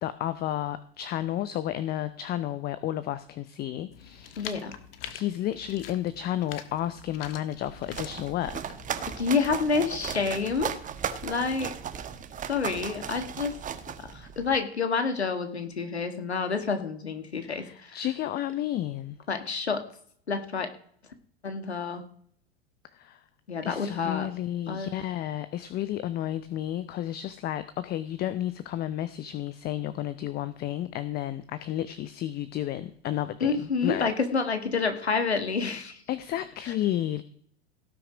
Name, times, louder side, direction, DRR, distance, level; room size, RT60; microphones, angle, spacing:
voice 1, 0.0-4.5 5.1-8.6 17.5-19.2 22.9-23.2 23.6-34.1 36.1-37.2, left 12 dB, 30° left, 14 dB, 0.6 m, -32 dB
sound 1, 3.9-9.0, left 9 dB, 65° left, 1.4 m, -45 dB
voice 2, 4.4-4.7 9.2-10.7 11.2-11.7 12.4-13.5 14.1-18.0 19.3-19.8 20.3-20.7 21.4-22.0 23.5-24.3 24.7-24.9 33.4-36.0 36.6-36.7, left 5 dB, 85° left, 8 dB, 1.7 m, -28 dB
sound 2, 7.6-14.6, right 8 dB, 25° right, 1.1 m, -36 dB
17.0 x 5.9 x 5.0 m, 0.62 s
figure-of-eight pair, 90°, 32 cm